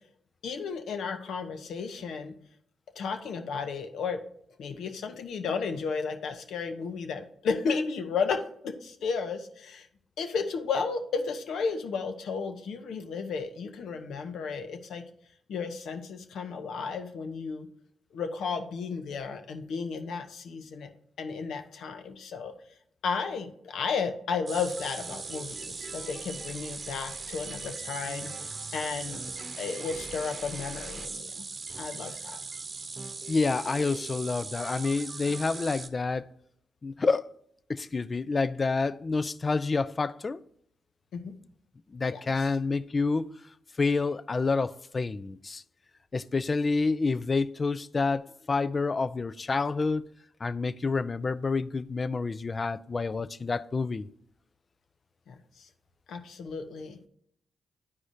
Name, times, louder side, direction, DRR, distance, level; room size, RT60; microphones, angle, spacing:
voice 1, 0.4-2.3 3.0-4.2 4.6-9.9 10.2-15.0 15.5-17.7 18.1-20.9 21.2-22.5 23.0-29.2 29.5-31.4 31.7-32.4 41.1-41.3 42.1-42.5 55.3-55.7 56.1-57.0, left 5 dB, 75° left, 0.9 m, -33 dB
sound 1, 24.5-35.9, right 4 dB, 50° right, 0.8 m, -39 dB
voice 2, 33.3-36.3 36.8-37.3 37.7-40.4 41.9-43.4 43.8-45.6 46.1-50.1 50.4-54.1, left 4 dB, 40° left, 0.4 m, -28 dB
11.5 x 4.8 x 2.7 m
supercardioid pair, 50°, 0 cm